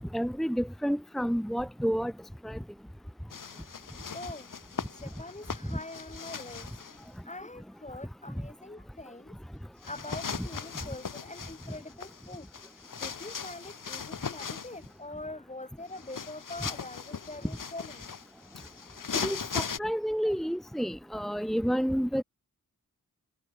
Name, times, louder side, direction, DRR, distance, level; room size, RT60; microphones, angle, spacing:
voice 1, 0.1-2.1 2.4-2.6 19.2-22.2, equal, ahead, 1.0 m, -30 dB
sound 1, 3.3-7.0 9.8-14.9 15.9-19.8, left 6 dB, 60° left, 1.3 m, -39 dB
voice 2, 4.1-6.7 7.2-9.4 9.9-12.5 13.0-18.2, left 2 dB, 20° left, 1.5 m, -44 dB
wide cardioid pair, 85°, 35 cm